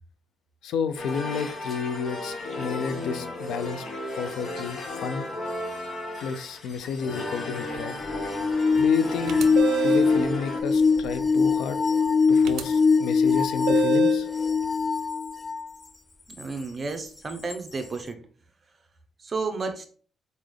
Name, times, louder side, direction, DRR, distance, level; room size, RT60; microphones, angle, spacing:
voice 1, 0.6-3.9 4.2-5.3 6.2-8.0 8.8-9.4 9.8-11.8 12.3-14.3, left 6 dB, 80° left, 0.4 m, -31 dB
sound 1, 1.0-10.6, left 1 dB, 50° left, 1.1 m, -35 dB
sound 2, 8.0-15.7 16.4-16.5 17.5-17.6, left 5 dB, 20° left, 0.3 m, -22 dB
sound 3, 9.3-10.2 12.4-12.6 13.7-14.3, right 7 dB, 80° right, 0.4 m, -27 dB
voice 2, 16.4-18.2 19.2-19.9, right 4 dB, 35° right, 0.8 m, -32 dB
4.0 x 3.8 x 3.3 m
cardioid pair, 90°, 0 cm